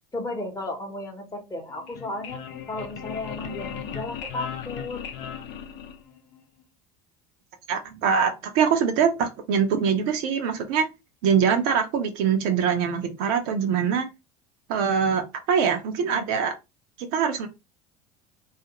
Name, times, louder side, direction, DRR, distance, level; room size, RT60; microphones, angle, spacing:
voice 1, 0.1-2.4 2.7-5.0, left 2 dB, 15° left, 0.8 m, -34 dB
sound 1, 1.7-6.4, left 8 dB, 60° left, 0.5 m, -37 dB
voice 2, 7.7-10.9 11.2-14.1 14.7-16.6 17.1-17.5, right 7 dB, 65° right, 0.6 m, -23 dB
2.4 x 2.0 x 2.8 m
hypercardioid pair, 80°, 21 cm